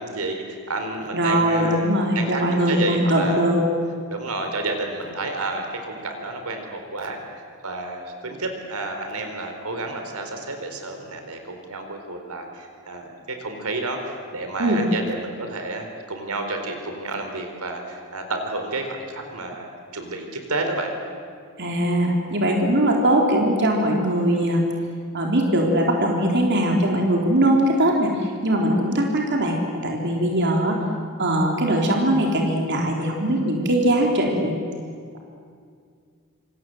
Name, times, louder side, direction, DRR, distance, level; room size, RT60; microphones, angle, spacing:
voice 1, 0.0-1.9 2.1-3.4 4.1-7.2 7.6-13.1 13.4-19.7 19.9-20.9, right 2 dB, 85° right, 4 dB, 4.1 m, -30 dB
voice 2, 1.1-3.6 14.6-14.8 21.6-24.6 25.1-29.6 29.8-30.8 31.2-34.6, right 1 dB, 55° right, 0 dB, 3.5 m, -21 dB
27.0 x 26.5 x 7.9 m, 2.2 s
head